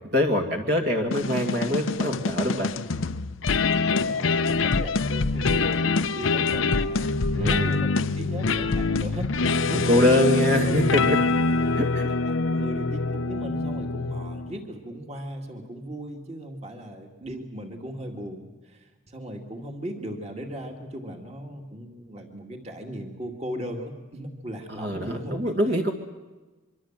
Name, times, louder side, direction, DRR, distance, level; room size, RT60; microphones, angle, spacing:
voice 1, 0.1-2.7 7.3-7.8 9.7-11.2 11.8-12.1 24.7-25.9, left 1 dB, 55° right, 2 dB, 2.3 m, -24 dB
sound 1, 1.1-14.6, left 3 dB, 85° left, 0.8 m, -25 dB
voice 2, 3.9-5.8 6.1-11.0 12.3-25.5, right 1 dB, 30° right, 3 dB, 2.4 m, -37 dB
25.0 x 24.5 x 7.5 m, 1.2 s
head